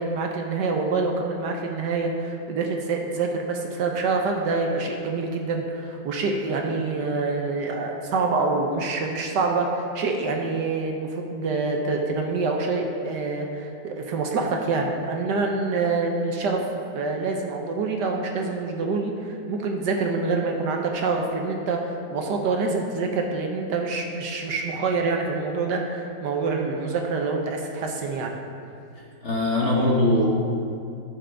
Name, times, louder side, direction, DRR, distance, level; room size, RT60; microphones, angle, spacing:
voice 1, 0.0-28.3, right 3 dB, 65° right, 2 dB, 1.3 m, -26 dB
voice 2, 29.0-30.3, left 1 dB, 45° left, -3 dB, 1.0 m, -22 dB
12.5 x 6.5 x 3.4 m, 2.6 s
omnidirectional pair, 2.1 m